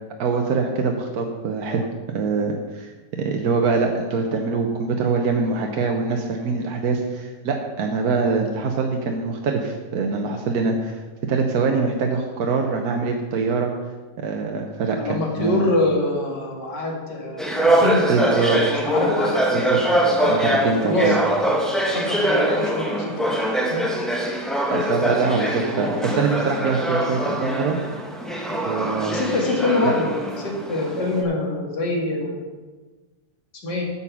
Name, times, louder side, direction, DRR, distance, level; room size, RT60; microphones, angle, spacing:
voice 1, 0.2-1.9 2.1-2.9 3.2-11.0 11.3-13.7 14.2-15.7 18.1-18.6 19.5-19.8 20.3-21.2 24.7-27.8 28.6-29.2 29.8-29.9, right 4 dB, 65° right, 2 dB, 1.3 m, -23 dB
voice 2, 15.0-19.4 20.1-23.1 23.7-23.8 25.0-25.7 29.1-30.1 30.4-32.4 33.6-33.8, left 2 dB, 75° left, 0 dB, 2.4 m, -25 dB
sound 1, 17.4-31.2, right 1 dB, ahead, 0.6 m, -23 dB
8.2 x 7.1 x 6.0 m, 1.3 s
omnidirectional pair, 1.9 m